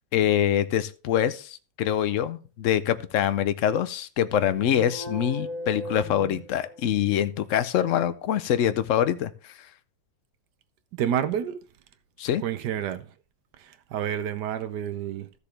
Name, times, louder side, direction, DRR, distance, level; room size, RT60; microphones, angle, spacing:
voice 1, 0.1-9.5 12.2-12.4, left 10 dB, 70° left, 0.7 m, -25 dB
sound 1, 4.6-7.1, equal, 25° right, 2.7 m, -37 dB
voice 2, 11.0-11.6 12.4-13.1 13.9-15.3, right 9 dB, 70° right, 1.2 m, -28 dB
13.5 x 6.8 x 3.4 m
omnidirectional pair, 2.0 m